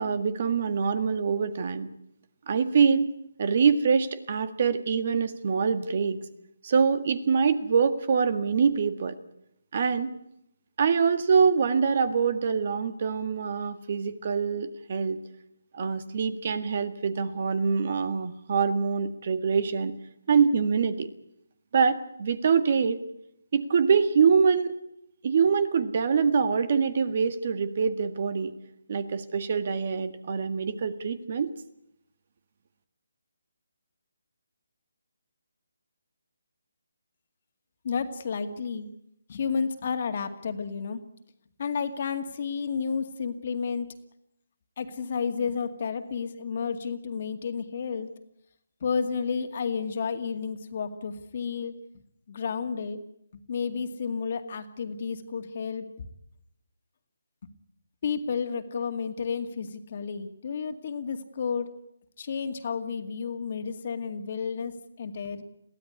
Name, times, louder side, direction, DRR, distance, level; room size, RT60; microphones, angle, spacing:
voice 1, 0.0-1.9 2.5-3.1 3.4-6.2 6.6-9.2 9.7-10.1 10.8-15.2 15.7-19.9 20.3-21.1 21.7-23.0 23.5-24.7 25.2-28.5 28.9-31.5, right 6 dB, 45° right, 12 dB, 1.7 m, -24 dB
voice 2, 37.8-38.9 39.3-41.0 41.6-43.9 44.8-48.1 48.8-51.8 52.3-53.0 53.3-55.8 58.0-61.7 62.2-65.4, left 6 dB, 45° left, 8 dB, 2.2 m, -31 dB
22.0 x 16.0 x 9.8 m, 0.79 s
figure-of-eight pair, 155°, 0 cm